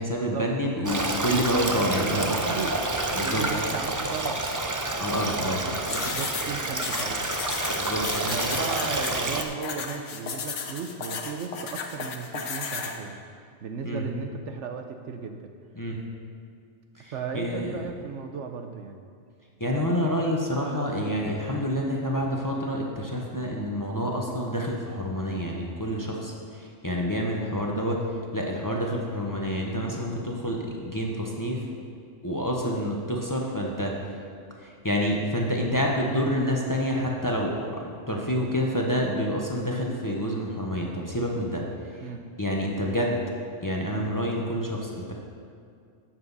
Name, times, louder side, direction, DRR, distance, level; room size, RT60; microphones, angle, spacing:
voice 1, 0.0-2.3 3.1-3.5 5.0-5.6 7.7-8.2 13.8-14.1 15.7-16.1 16.9-17.7 19.6-31.6 32.2-33.9 34.6-41.6 41.9-42.0 42.4-43.2 43.6-45.1, equal, 15° left, -1 dB, 0.9 m, -28 dB
Stream, 0.8-9.4, right 2 dB, 30° right, 0.3 m, -28 dB
voice 2, 1.6-2.7 3.2-4.5 5.3-7.3 8.2-13.2 13.6-15.5 17.1-19.0 42.0-42.2, right 5 dB, 70° right, 6 dB, 1.0 m, -35 dB
sound 1, 5.9-13.0, left 5 dB, 70° left, 1.2 m, -34 dB
13.0 x 7.5 x 4.1 m, 2.3 s
omnidirectional pair, 1.3 m